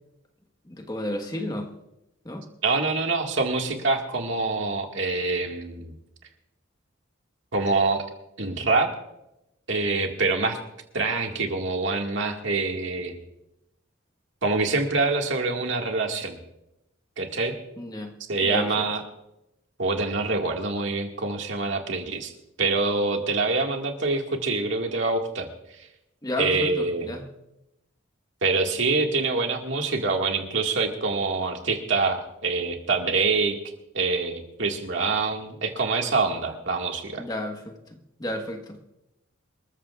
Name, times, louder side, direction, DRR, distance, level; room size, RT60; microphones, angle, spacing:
voice 1, 0.7-1.7 2.2-2.5 17.8-18.1 18.4-18.8 26.2-27.3 37.2-38.8, left 1 dB, 20° left, 4 dB, 1.4 m, -32 dB
voice 2, 2.6-5.9 7.5-8.0 8.4-8.9 9.7-10.6 10.9-13.2 14.4-16.4 17.2-17.5 18.3-19.0 19.8-22.3 22.6-25.5 25.8-25.9 26.4-27.1 28.4-33.6 33.9-37.2, right 3 dB, 70° right, 2 dB, 1.9 m, -25 dB
26.5 x 14.0 x 2.4 m, 0.88 s
head